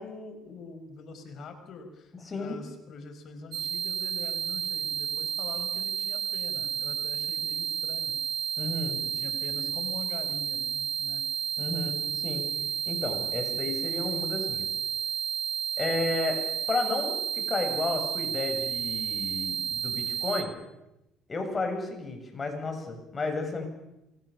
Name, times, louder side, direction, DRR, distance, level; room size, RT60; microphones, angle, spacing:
voice 1, 0.0-8.2 9.0-11.2, left 4 dB, 55° left, 8 dB, 5.3 m, -44 dB
voice 2, 2.3-2.6 8.6-9.0 11.6-12.4 12.9-14.7 15.8-16.4 16.7-20.6 21.3-23.7, left 3 dB, 25° left, 4 dB, 7.8 m, -32 dB
sound 1, 3.5-20.4, right 8 dB, 60° right, 1.9 m, -31 dB
28.0 x 24.0 x 7.2 m, 0.91 s
cardioid pair, 100°, 0 cm